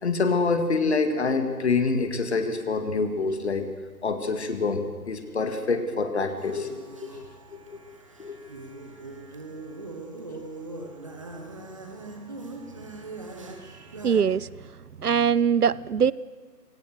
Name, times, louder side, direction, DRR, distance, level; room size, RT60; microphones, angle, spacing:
voice 1, 0.0-3.7 4.0-6.7 7.0-7.1 7.5-7.8 8.2-8.3, left 4 dB, 40° left, 7 dB, 2.1 m, -26 dB
sound 1, 6.4-14.2, right 2 dB, 20° right, 1.1 m, -41 dB
voice 2, 14.0-14.5 15.0-16.1, right 7 dB, 65° right, 21 dB, 0.7 m, -22 dB
27.0 x 17.5 x 6.5 m, 1.4 s
figure-of-eight pair, 160°, 49 cm